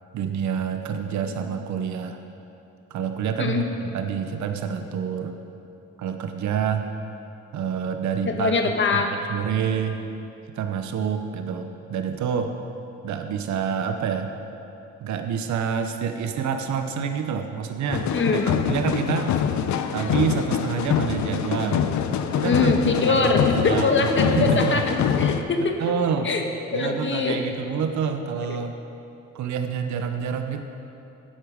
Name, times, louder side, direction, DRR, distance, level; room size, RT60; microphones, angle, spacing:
voice 1, 0.1-2.2 2.9-5.4 6.0-6.9 7.5-8.6 8.9-9.0 9.3-10.0 10.6-12.5 13.0-14.3 15.0-18.1 18.7-19.4 19.9-21.9 22.3-22.7 23.0-23.9 24.2-24.8 25.6-26.3 26.7-28.7 29.3-30.6, right 7 dB, 70° right, 6 dB, 0.8 m, -27 dB
voice 2, 8.3-9.1 18.1-18.5 22.3-25.8 26.2-26.4 26.7-27.4 28.5-28.6, left 3 dB, 40° left, 4 dB, 1.3 m, -23 dB
sound 1, 17.9-25.4, left 8 dB, 70° left, 0.7 m, -24 dB
12.0 x 8.1 x 5.1 m, 2.8 s
cardioid pair, 90°, 30 cm